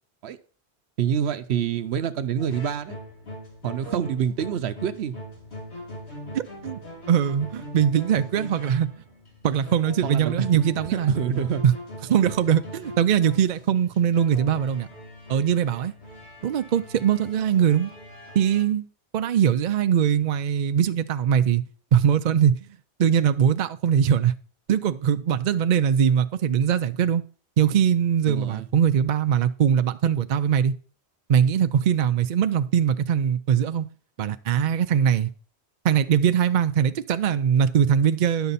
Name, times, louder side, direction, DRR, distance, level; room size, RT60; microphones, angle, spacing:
voice 1, 1.0-3.0 3.6-5.1 10.0-10.5 10.9-11.6 28.3-28.7, right 8 dB, 75° right, 0.9 m, -26 dB
sound 1, 2.4-18.6, equal, 80° left, 2.7 m, -41 dB
voice 2, 6.3-6.8 7.1-8.9 9.4-11.1 11.6-11.7 12.0-14.9 15.3-15.9 16.4-17.9 18.3-18.9 19.1-21.6 21.9-22.5 23.0-24.3 24.7-27.2 27.6-30.7 31.3-33.9 34.2-35.3 35.8-38.5, right 8 dB, 55° right, 0.6 m, -21 dB
10.5 x 6.9 x 4.1 m
omnidirectional pair, 1.1 m